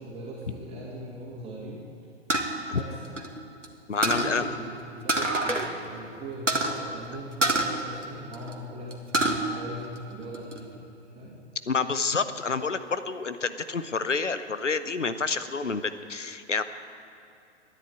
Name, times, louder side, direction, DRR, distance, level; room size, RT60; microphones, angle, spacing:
voice 1, 0.0-1.8 2.7-3.2 4.0-10.8 11.1-11.4, right 1 dB, 15° right, -5 dB, 2.7 m, -40 dB
sound 1, 2.3-3.7 4.0-4.4 5.1-5.7 6.0-6.1 6.5-6.7 7.4-8.5 8.9-9.4 9.8-10.6, right 2 dB, 90° right, 1.6 m, -26 dB
voice 2, 3.9-4.5 11.7-16.6, left 4 dB, 85° left, 12 dB, 0.8 m, -28 dB
13.5 x 10.0 x 8.5 m, 2.7 s
figure-of-eight pair, 110°, 36 cm